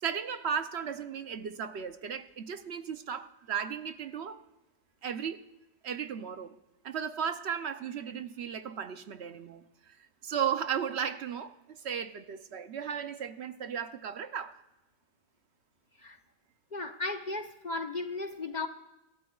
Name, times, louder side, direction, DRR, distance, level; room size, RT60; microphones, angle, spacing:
voice 1, 0.0-4.4 5.0-5.4 5.8-6.5 6.8-10.0 10.2-14.6, right 8 dB, 65° right, 0.9 m, -35 dB
voice 2, 16.7-18.7, left 3 dB, 45° left, 0.7 m, -35 dB
25.5 x 12.5 x 2.3 m
omnidirectional pair, 1.3 m